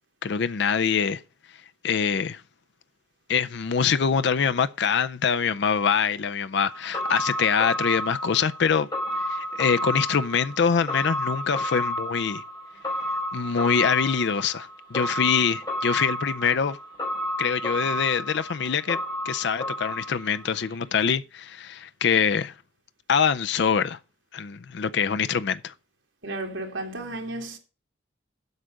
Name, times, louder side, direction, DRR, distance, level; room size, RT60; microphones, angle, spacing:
voice 1, 0.2-1.2 1.8-2.4 3.3-8.9 9.2-12.4 13.3-16.8 17.4-22.5 23.1-24.0 24.3-25.7, left 6 dB, 65° left, 0.5 m, -24 dB
sound 1, 6.5-20.7 21.0-21.1, left 1 dB, 20° left, 3.4 m, -31 dB
voice 2, 26.2-27.6, right 2 dB, 80° right, 2.4 m, -33 dB
8.1 x 5.1 x 7.6 m
head